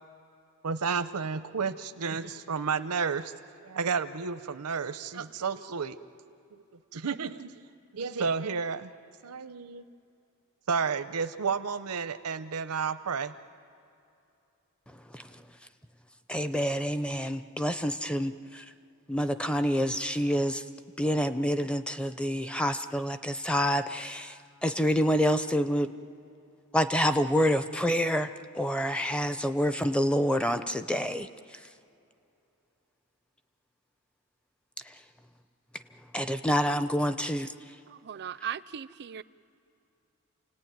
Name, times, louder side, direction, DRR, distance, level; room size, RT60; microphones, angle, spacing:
voice 1, 0.6-3.3 3.6-6.0 6.5-6.6 6.9-7.5 7.9-8.9 9.2-9.8 10.7-13.3, right 5 dB, 80° right, 11 dB, 0.7 m, -31 dB
voice 2, 15.1-15.4 16.3-18.7 19.1-20.6 21.0-25.9 26.7-31.3 34.8-34.9 36.1-37.5, equal, 5° left, 10 dB, 0.6 m, -27 dB
voice 3, 37.9-39.2, right 9 dB, 50° right, 17 dB, 0.5 m, -38 dB
28.5 x 18.5 x 9.3 m, 2.7 s
head